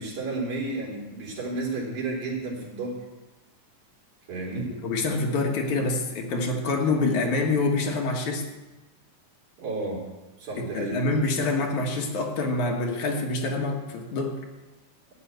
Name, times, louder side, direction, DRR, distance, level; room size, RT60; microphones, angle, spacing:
voice 1, 0.0-3.0 4.3-4.7 9.6-10.0 10.4-11.0, right 2 dB, 65° right, -3 dB, 4.5 m, -32 dB
voice 2, 4.8-8.5 10.6-14.4, left 3 dB, 70° left, 1 dB, 2.7 m, -26 dB
13.0 x 6.1 x 9.1 m, 1.1 s
omnidirectional pair, 3.6 m